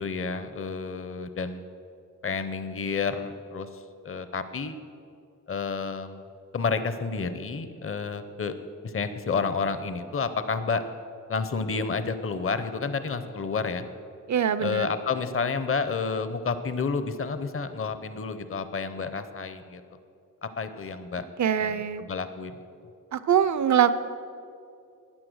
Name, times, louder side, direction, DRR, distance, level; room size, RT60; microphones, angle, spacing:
voice 1, 0.0-1.6 2.2-3.7 4.0-4.7 5.5-6.2 6.5-8.5 8.8-10.8 11.3-13.9 14.6-19.8 20.4-21.2 21.6-22.5, left 5 dB, 40° left, 11 dB, 0.7 m, -30 dB
voice 2, 14.3-14.9 21.4-22.0 23.1-23.9, right 9 dB, 60° right, 14 dB, 0.6 m, -23 dB
11.5 x 9.6 x 6.3 m, 2.5 s
wide cardioid pair, 85°, 32 cm